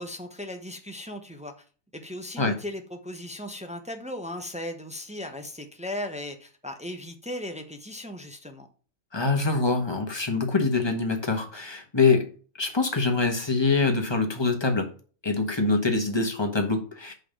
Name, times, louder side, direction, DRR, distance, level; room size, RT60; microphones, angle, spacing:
voice 1, 0.0-1.6 1.9-8.7, left 1 dB, 5° right, 0.9 m, -37 dB
voice 2, 9.1-12.3 12.6-14.9 15.2-17.1, left 3 dB, 20° left, 1.3 m, -24 dB
5.6 x 5.2 x 6.7 m
omnidirectional pair, 1.3 m